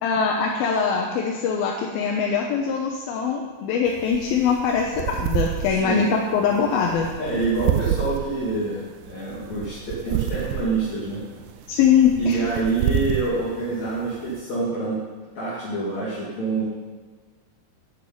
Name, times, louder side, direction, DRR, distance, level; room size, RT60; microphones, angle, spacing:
voice 1, 0.0-7.1 11.7-12.4, left 6 dB, 85° left, 0 dB, 2.9 m, -22 dB
sound 1, 3.9-14.4, right 11 dB, 80° right, 2.0 m, -29 dB
voice 2, 7.2-11.2 12.2-15.0 15.4-16.6, right 3 dB, 50° left, -9 dB, 3.8 m, -26 dB
11.5 x 8.2 x 8.6 m, 1.4 s
omnidirectional pair, 4.2 m